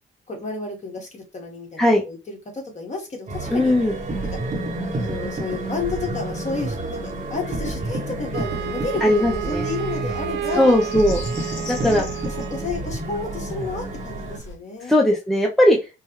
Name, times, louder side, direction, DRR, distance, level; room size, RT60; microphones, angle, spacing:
voice 1, 0.3-3.8 4.2-4.4 5.0-10.9 11.6-15.0, left 4 dB, 35° left, 1 dB, 1.6 m, -31 dB
sound 1, 3.3-14.5, left 1 dB, 75° left, 1.4 m, -39 dB
sound 2, 3.3-14.4, right 2 dB, 40° right, 1.0 m, -30 dB
voice 2, 3.5-4.0 9.0-9.6 10.6-12.0 14.8-15.8, left 1 dB, ahead, 0 dB, 0.6 m, -19 dB
Wind instrument woodwind instrument, 8.3-12.7, right 12 dB, 60° right, 0.4 m, -31 dB
4.5 x 2.2 x 3.1 m, 0.28 s
cardioid pair, 90°, 20 cm